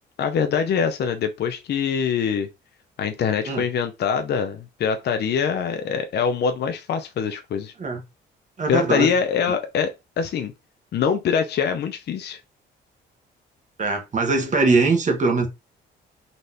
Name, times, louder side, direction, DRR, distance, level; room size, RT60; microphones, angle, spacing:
voice 1, 0.2-2.5 3.0-7.7 8.7-10.5 10.9-12.4, left 7 dB, 55° left, 0.6 m, -24 dB
voice 2, 8.6-9.1 13.8-15.5, right 3 dB, 40° right, 1.2 m, -21 dB
4.1 x 3.1 x 2.6 m
cardioid pair, 90°, 20 cm